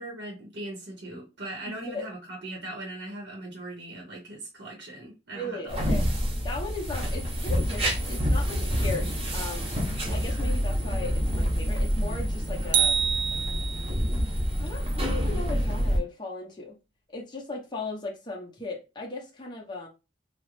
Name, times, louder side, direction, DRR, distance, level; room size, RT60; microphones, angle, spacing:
voice 1, 0.0-5.9, right 1 dB, 60° right, 0.7 m, -39 dB
voice 2, 1.7-2.0 5.3-6.0 6.4-9.7 10.1-13.0 14.6-16.8 17.1-19.9, left 2 dB, 25° left, 0.6 m, -37 dB
sound 1, 5.7-16.0, equal, 35° right, 0.7 m, -27 dB
sound 2, 12.7-14.1, right 8 dB, 75° right, 0.3 m, -26 dB
2.4 x 2.0 x 3.0 m
head